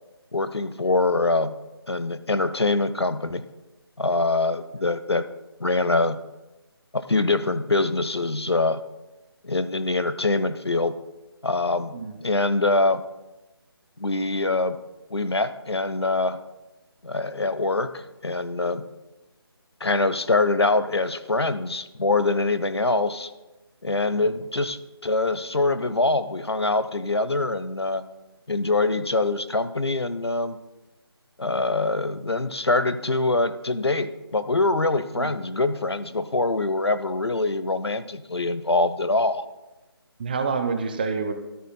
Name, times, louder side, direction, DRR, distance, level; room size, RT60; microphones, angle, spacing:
voice 1, 0.3-1.6 1.9-3.4 4.0-5.3 5.6-6.2 6.9-8.8 9.4-11.0 11.4-11.9 12.2-13.0 14.0-14.8 15.1-16.4 17.0-18.8 19.8-23.3 23.8-28.0 28.5-30.6 31.4-39.4, left 2 dB, 75° left, 14 dB, 0.7 m, -24 dB
voice 2, 40.2-41.3, right 5 dB, 20° right, 7 dB, 0.6 m, -27 dB
14.0 x 13.5 x 2.2 m, 1.0 s
figure-of-eight pair, 150°, 14 cm